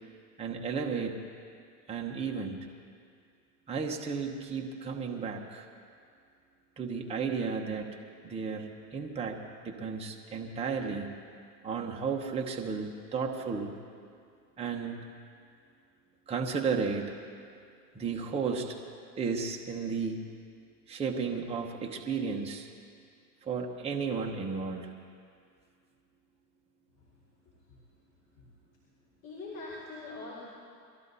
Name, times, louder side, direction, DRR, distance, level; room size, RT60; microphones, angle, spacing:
voice 1, 0.4-1.2 1.9-2.6 3.7-5.7 6.8-7.9 8.2-11.1 11.6-13.7 14.6-15.1 16.3-17.1 17.9-18.7 19.2-20.2 20.9-22.7 23.4-24.9, right 5 dB, 10° right, 0 dB, 1.1 m, -33 dB
voice 2, 29.2-30.4, left 3 dB, 35° left, -7 dB, 5.0 m, -42 dB
23.0 x 14.0 x 4.1 m, 2.3 s
supercardioid pair, 130°, 48 cm